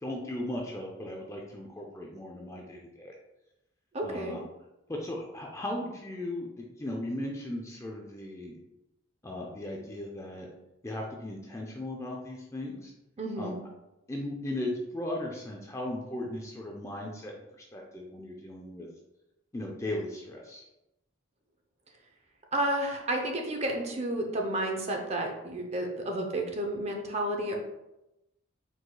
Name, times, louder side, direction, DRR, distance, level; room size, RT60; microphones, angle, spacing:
voice 1, 0.0-3.1 4.0-4.4 4.9-8.6 9.2-10.5 10.8-12.9 13.4-13.5 14.1-18.9 19.5-20.6, left 1 dB, 15° left, 0 dB, 0.4 m, -37 dB
voice 2, 3.9-4.4 13.2-13.6 22.5-27.6, right 1 dB, 30° right, 2 dB, 0.6 m, -31 dB
4.7 x 3.9 x 2.2 m, 0.93 s
head